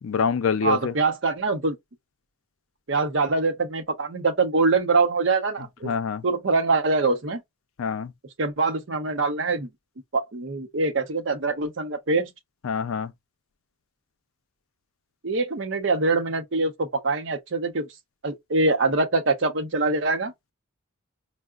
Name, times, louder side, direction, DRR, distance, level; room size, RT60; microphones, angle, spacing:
voice 1, 0.0-0.9 5.8-6.2 7.8-8.1 12.6-13.1, left 6 dB, 80° left, 0.4 m, -25 dB
voice 2, 0.6-1.8 2.9-5.9 6.2-7.4 8.4-9.7 10.1-12.3 15.2-17.9 18.2-20.3, right 3 dB, 65° right, 0.7 m, -24 dB
4.6 x 2.0 x 2.3 m
head